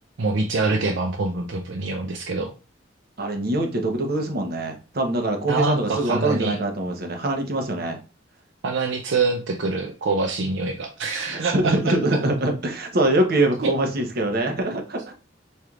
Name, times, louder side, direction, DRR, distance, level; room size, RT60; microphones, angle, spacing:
voice 1, 0.2-2.5 5.5-6.6 8.6-11.9 13.6-13.7, right 3 dB, 85° right, 4 dB, 0.5 m, -25 dB
voice 2, 3.2-8.0 11.3-15.1, right 1 dB, 55° right, 3 dB, 0.9 m, -23 dB
4.3 x 3.3 x 2.4 m, 0.32 s
head